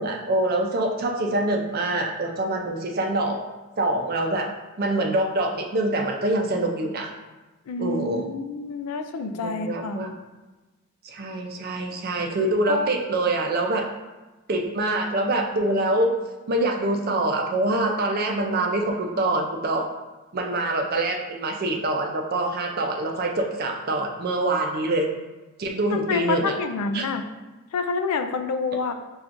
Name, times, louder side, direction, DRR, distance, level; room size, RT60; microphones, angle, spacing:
voice 1, 0.0-3.4 3.8-4.5 4.8-7.1 7.8-8.3 9.3-10.1 11.0-13.9 14.5-16.1 16.5-19.9 20.3-25.1 25.6-26.5 26.9-27.0, right 2 dB, 45° right, 2 dB, 0.5 m, -25 dB
voice 2, 7.7-10.1 12.7-12.9 25.9-27.2 27.7-28.9, left 4 dB, 90° left, 7 dB, 0.4 m, -28 dB
5.7 x 2.4 x 2.6 m, 1.2 s
head